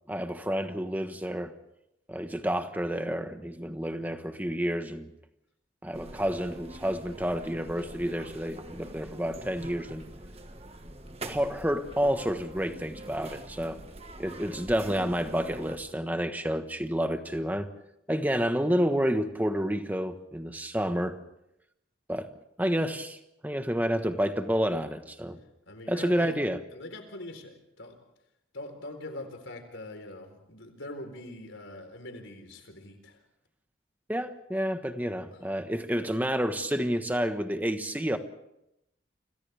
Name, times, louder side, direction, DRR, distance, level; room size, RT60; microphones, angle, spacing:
voice 1, 0.1-1.5 2.1-5.1 5.8-10.0 11.2-13.8 14.2-17.7 18.1-21.2 22.1-22.3 22.6-23.2 23.4-25.4 25.9-26.6 34.1-38.2, equal, 10° right, 7 dB, 1.3 m, -29 dB
sound 1, 5.9-15.8, right 1 dB, 30° right, 1.5 m, -44 dB
voice 2, 25.7-26.4 26.7-28.0 28.5-33.2 35.3-35.4, left 1 dB, 85° left, 6 dB, 4.1 m, -43 dB
30.0 x 26.5 x 3.5 m, 0.83 s
head